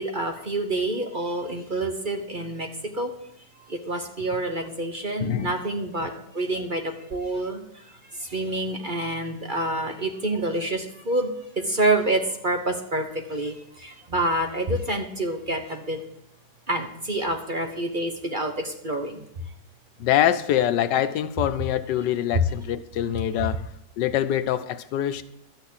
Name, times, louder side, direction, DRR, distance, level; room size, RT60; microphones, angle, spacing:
voice 1, 0.0-2.7 3.0-3.1 3.7-6.8 7.1-7.6 8.2-13.0 13.3-13.5 13.8-16.0 16.7-19.2, right 1 dB, 35° right, 5 dB, 1.1 m, -27 dB
voice 2, 5.2-5.6 6.6-6.7 20.0-23.6 24.0-25.2, left 11 dB, 85° left, 12 dB, 1.4 m, -24 dB
12.5 x 6.5 x 8.6 m, 0.76 s
omnidirectional pair, 1.8 m